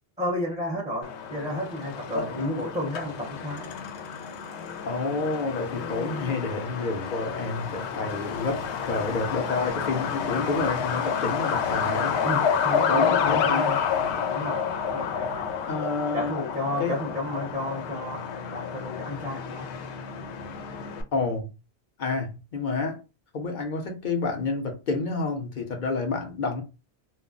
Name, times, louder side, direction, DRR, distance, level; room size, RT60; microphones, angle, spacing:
voice 1, 0.2-3.7 8.6-8.7 12.2-13.8 14.3-14.6 14.9-15.5 16.1-19.7, left 1 dB, 10° right, 0.7 m, -32 dB
Truck, 1.0-21.0, left 7 dB, 90° left, 0.9 m, -29 dB
voice 2, 2.1-2.5 4.8-12.2 12.9-13.7 15.7-16.3 16.8-16.9 21.1-21.5 22.0-23.0 23.3-26.6, left 3 dB, 50° left, 0.7 m, -29 dB
2.3 x 2.0 x 3.7 m
omnidirectional pair, 1.1 m